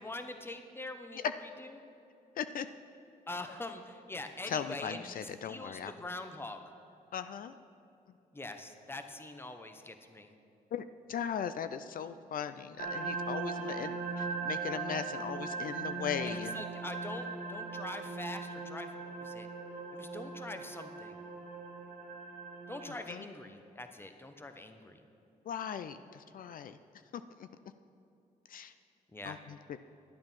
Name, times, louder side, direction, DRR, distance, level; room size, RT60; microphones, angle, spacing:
voice 1, 0.0-1.3 1.6-1.7 3.3-6.6 8.3-10.3 16.2-19.5 19.9-21.2 22.7-25.0 29.1-29.4, left 2 dB, 15° left, 7 dB, 0.9 m, -44 dB
voice 2, 4.5-5.9 7.1-7.5 10.7-16.6 23.1-23.2 25.5-26.8 27.1-27.5 28.5-28.7 29.2-29.8, left 8 dB, 60° left, 11 dB, 0.4 m, -38 dB
sound 1, 12.8-23.0, right 4 dB, 85° right, 1.4 m, -39 dB
10.5 x 8.7 x 5.6 m, 2.8 s
cardioid pair, 65°, 16 cm